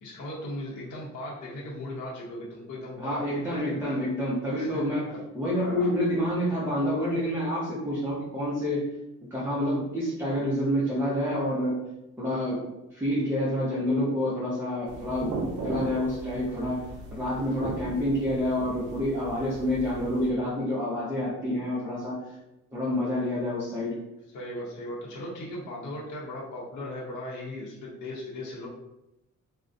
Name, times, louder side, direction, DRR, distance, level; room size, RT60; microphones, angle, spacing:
voice 1, 0.0-4.0 4.5-5.2 5.6-5.9 24.3-28.7, left 1 dB, 65° left, -5 dB, 0.7 m, -38 dB
voice 2, 3.0-5.1 5.3-8.9 9.3-11.8 12.2-15.3 15.6-22.3 22.7-24.0, equal, 10° right, -8 dB, 0.5 m, -28 dB
sound 1, 14.9-20.3, right 2 dB, 65° right, 0.5 m, -37 dB
2.4 x 2.1 x 2.5 m, 0.92 s
wide cardioid pair, 140°, 33 cm